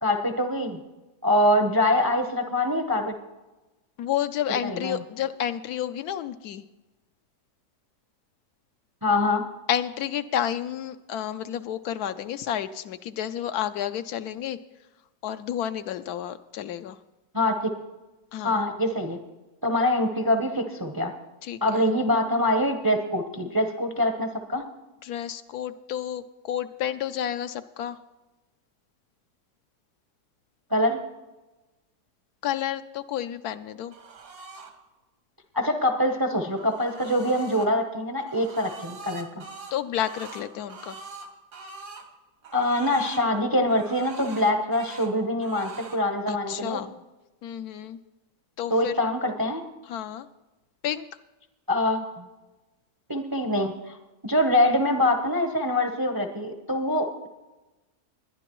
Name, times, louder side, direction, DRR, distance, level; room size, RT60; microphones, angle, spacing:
voice 1, 0.0-0.8 1.2-3.2 4.6-5.0 9.0-9.5 17.3-17.7 18.4-19.2 19.6-21.1 21.6-24.6 30.7-31.0 35.5-39.4 42.5-46.8 48.7-49.6 51.7-52.3 53.1-54.0 54.2-57.3, left 1 dB, 25° right, 5 dB, 0.5 m, -24 dB
voice 2, 4.0-6.6 9.7-14.6 15.2-17.0 18.3-18.6 21.4-21.9 25.0-28.0 32.4-33.9 39.7-41.0 46.3-46.9 47.4-48.0 48.6-49.1 49.9-50.3 50.8-51.1, left 10 dB, 75° left, 11 dB, 1.0 m, -31 dB
sound 1, 33.9-34.7 36.1-37.7 38.2-42.1 42.4-43.3 43.7-45.1 45.4-46.0, right 4 dB, 75° right, 1.8 m, -43 dB
21.0 x 10.5 x 3.0 m, 1.1 s
omnidirectional pair, 1.7 m